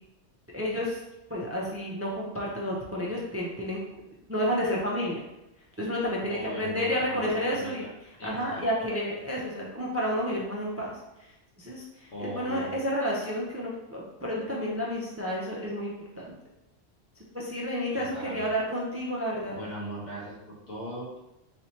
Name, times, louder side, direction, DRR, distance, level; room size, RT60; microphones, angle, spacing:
voice 1, 0.5-1.0 1.3-3.8 4.3-5.2 5.8-7.9 8.2-10.9 11.6-16.3 17.3-19.5, equal, 20° right, -4 dB, 0.4 m, -30 dB
voice 2, 6.3-7.9 8.2-8.6 12.1-12.7 17.9-18.5 19.5-20.4 20.7-21.2, right 1 dB, 85° left, -5 dB, 1.5 m, -38 dB
3.9 x 3.1 x 2.8 m, 0.90 s
omnidirectional pair, 1.2 m